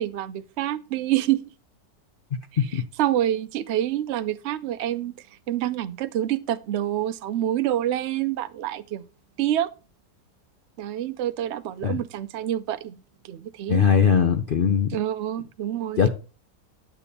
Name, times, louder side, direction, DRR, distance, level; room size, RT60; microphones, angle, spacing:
voice 1, 0.0-1.4 2.5-5.1 5.5-9.0 9.4-9.7 10.8-13.0 13.2-13.9 14.9-16.1, right 12 dB, 75° right, 0.6 m, -27 dB
voice 2, 13.7-14.9 16.0-16.1, left 7 dB, 70° left, 0.5 m, -20 dB
9.9 x 6.9 x 4.2 m
omnidirectional pair, 1.8 m